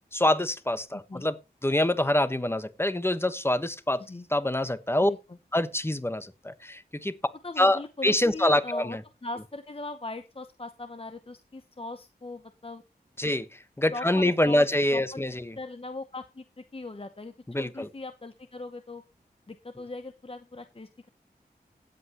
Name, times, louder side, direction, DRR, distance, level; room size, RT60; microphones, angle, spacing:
voice 1, 0.1-4.0 4.3-5.1 5.5-7.1 7.6-9.0 13.2-15.6 17.5-17.9, left 1 dB, 15° left, 1.2 m, -26 dB
voice 2, 7.4-12.8 13.9-14.7 14.9-15.2 15.6-19.0 19.5-21.1, left 2 dB, 35° left, 0.9 m, -40 dB
17.5 x 8.1 x 3.0 m
wide cardioid pair, 60°, 17 cm